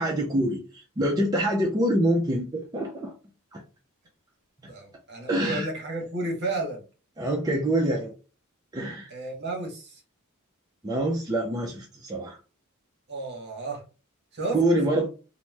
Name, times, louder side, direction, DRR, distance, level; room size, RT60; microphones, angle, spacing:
voice 1, 0.0-3.1 3.5-3.6 4.6-4.7 5.3-5.7 7.2-8.1 8.7-9.1 10.8-12.4 14.5-15.1, right 1 dB, 20° right, 0.4 m, -25 dB
voice 2, 4.7-6.8 9.1-10.0 13.1-13.8 14.3-14.6, right 2 dB, 50° right, 0.9 m, -32 dB
2.9 x 2.0 x 3.3 m
head